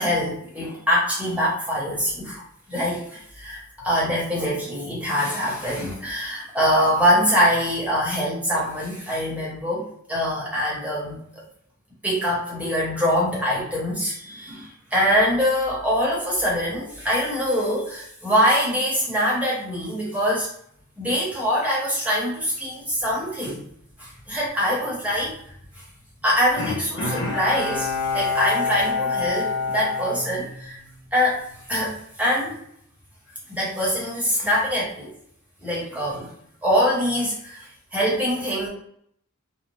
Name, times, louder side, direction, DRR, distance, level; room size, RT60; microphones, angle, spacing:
voice 1, 0.0-2.4 2.7-11.2 12.0-20.5 21.0-23.6 24.0-25.4 25.7-25.8 26.2-30.8 31.1-31.4 31.7-32.6 33.5-35.1 35.6-36.3 36.6-38.7, equal, 5° right, -6 dB, 1.0 m, -24 dB
Bowed string instrument, 26.6-31.1 31.5-31.6, left 4 dB, 65° left, 0.6 m, -26 dB
2.6 x 2.0 x 3.1 m, 0.67 s
head